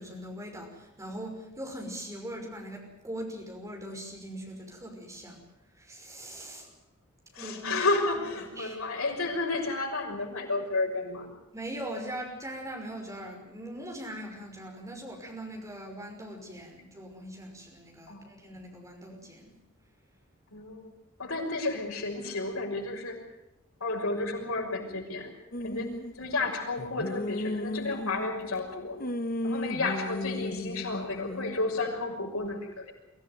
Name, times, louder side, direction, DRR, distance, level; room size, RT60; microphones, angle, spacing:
voice 1, 0.0-5.4 5.8-6.7 7.4-7.9 8.5-8.8 11.5-19.5, right 1 dB, 15° right, 2 dB, 5.7 m, -41 dB
voice 2, 7.3-11.3 18.1-18.3 20.5-20.9 21.2-23.2 23.8-25.3 25.6-25.9 26.1-29.0 29.4-32.9, left 3 dB, 90° left, 0 dB, 6.1 m, -32 dB
sound 1, 25.5-26.2 26.8-28.6 29.0-31.5, left 1 dB, 45° left, 1.2 m, -34 dB
24.0 x 15.5 x 9.4 m, 0.92 s
head